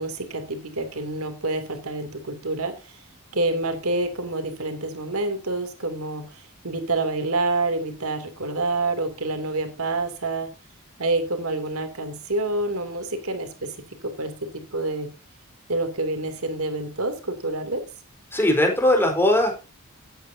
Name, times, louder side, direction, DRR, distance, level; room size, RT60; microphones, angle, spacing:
voice 1, 0.0-2.9 3.3-10.5 11.0-13.7 14.0-14.3 14.7-15.1 15.7-17.8, right 2 dB, 90° right, 8 dB, 2.9 m, -27 dB
voice 2, 18.3-19.5, left 1 dB, 10° left, 2 dB, 4.2 m, -19 dB
17.0 x 9.2 x 2.8 m, 0.29 s
head